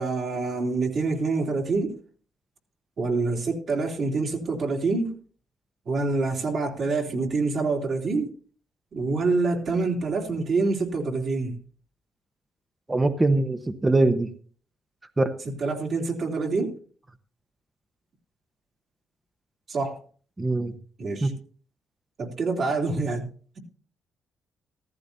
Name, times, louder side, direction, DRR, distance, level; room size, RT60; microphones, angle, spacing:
voice 1, 0.0-1.9 3.0-5.1 5.8-8.3 8.9-11.6 15.6-16.8 19.7-20.0 21.0-21.3 22.2-23.6, right 3 dB, 55° right, 1 dB, 3.1 m, -26 dB
voice 2, 12.9-14.3 15.2-15.3 20.4-20.7 21.2-21.3, right 2 dB, 20° right, 9 dB, 1.0 m, -22 dB
15.0 x 14.5 x 2.8 m, 0.43 s
cardioid pair, 90°, 0 cm